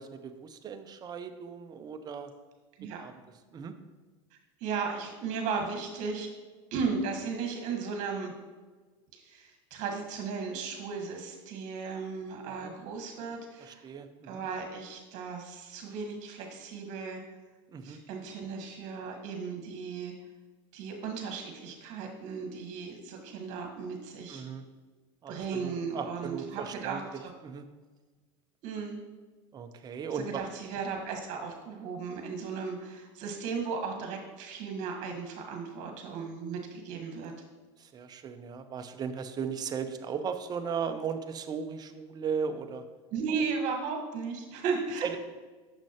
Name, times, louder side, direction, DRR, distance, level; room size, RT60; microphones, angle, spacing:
voice 1, 0.0-2.3 3.0-3.2 3.5-3.7 12.6-12.7 13.6-14.4 17.7-18.0 24.3-24.6 25.2-27.0 27.4-27.7 29.5-30.4 37.8-42.9 45.0-45.2, right 6 dB, 25° right, 8 dB, 0.5 m, -37 dB
voice 2, 4.6-6.3 6.7-8.3 9.1-13.8 14.3-17.2 17.8-20.1 20.7-24.4 25.3-27.3 28.6-29.0 30.1-37.3 43.1-45.2, right 5 dB, 55° right, 2 dB, 1.4 m, -36 dB
6.5 x 6.0 x 2.9 m, 1.3 s
supercardioid pair, 115°, 16 cm